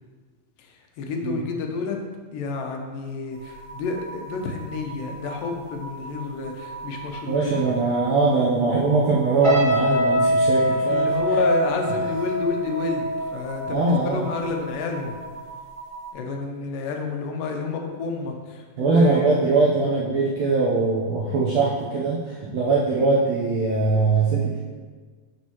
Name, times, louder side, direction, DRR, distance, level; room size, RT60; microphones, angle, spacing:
voice 1, 0.6-2.0 2.3-7.5 10.2-10.4 10.9-15.1 16.1-19.3, left 3 dB, 75° left, 2 dB, 2.4 m, -30 dB
sound 1, 3.3-16.1, right 3 dB, 40° left, 1.5 m, -40 dB
voice 2, 7.3-11.1 13.7-14.2 18.8-24.6, right 3 dB, 75° right, -5 dB, 1.6 m, -21 dB
sound 2, 9.4-14.7 15.0-15.3, equal, 25° right, 1.1 m, -24 dB
12.0 x 5.3 x 3.0 m, 1.5 s
omnidirectional pair, 4.2 m